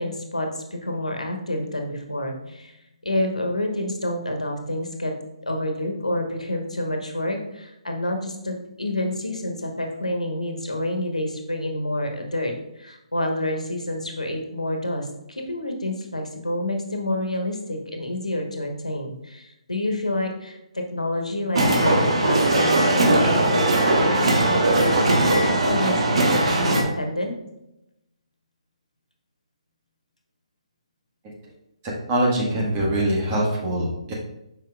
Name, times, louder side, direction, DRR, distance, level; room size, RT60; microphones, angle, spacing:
voice 1, 0.0-2.8 3.0-5.1 5.4-27.3, left 1 dB, 90° left, 3 dB, 1.3 m, -28 dB
sound 1, 21.6-26.8, right 2 dB, 60° right, 1.2 m, -19 dB
voice 2, 31.8-34.1, right 1 dB, 25° right, -3 dB, 1.6 m, -23 dB
7.4 x 5.4 x 2.4 m, 0.88 s
figure-of-eight pair, 140°, 4 cm